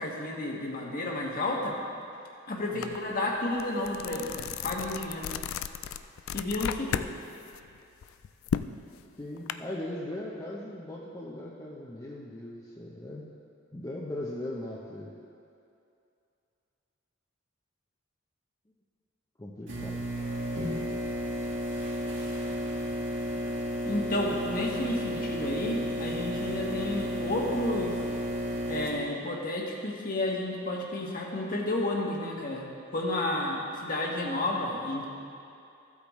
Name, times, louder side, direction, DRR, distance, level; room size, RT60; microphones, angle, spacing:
voice 1, 0.0-1.8 2.5-5.3 6.3-7.1 23.8-28.0 28.7-35.0, left 2 dB, 45° left, -1 dB, 1.3 m, -31 dB
sound 1, 2.8-3.0 3.4-7.1 7.5-9.5, left 8 dB, 80° left, 0.3 m, -34 dB
voice 2, 9.2-13.2 13.7-15.1 19.4-20.0, left 1 dB, 20° left, -4 dB, 0.7 m, -39 dB
sound 2, 19.7-28.9, equal, 65° right, 1.7 m, -32 dB
14.5 x 8.4 x 3.1 m, 2.6 s
head